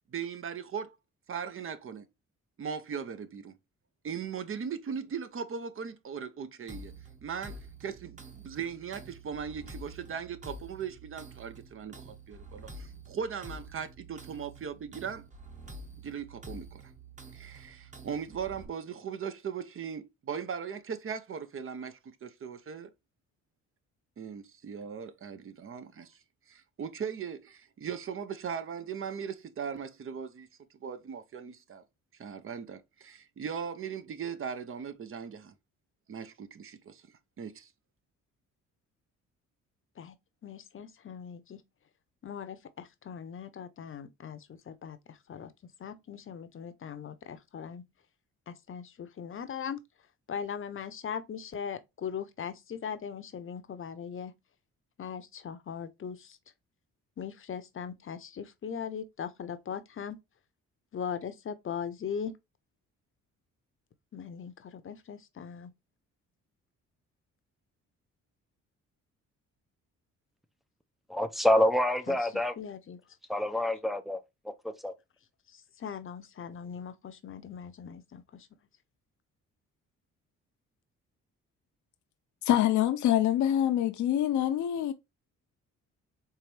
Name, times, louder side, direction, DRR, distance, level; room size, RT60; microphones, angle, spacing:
voice 1, 0.1-1.0 1.3-2.1 2.6-3.5 4.0-6.9 7.2-15.3 16.0-16.9 17.3-22.9 24.2-26.2 26.5-30.5 30.8-31.8 32.2-35.5 36.1-37.0 37.4-37.7, right 7 dB, 45° right, 0.8 m, -39 dB
sound 1, 6.7-18.6, right 2 dB, 25° right, 1.2 m, -48 dB
voice 2, 40.4-41.6 42.2-47.8 48.5-49.8 50.3-54.3 55.0-56.4 57.2-60.2 60.9-62.4 64.1-65.7 72.1-73.0 75.5-78.5, left 7 dB, 45° left, 0.8 m, -40 dB
voice 3, 71.1-72.5 73.3-74.2 74.8-74.9, left 1 dB, ahead, 0.6 m, -26 dB
voice 4, 82.4-84.9, left 11 dB, 75° left, 0.7 m, -25 dB
4.6 x 3.4 x 3.3 m
cardioid pair, 90°, 30 cm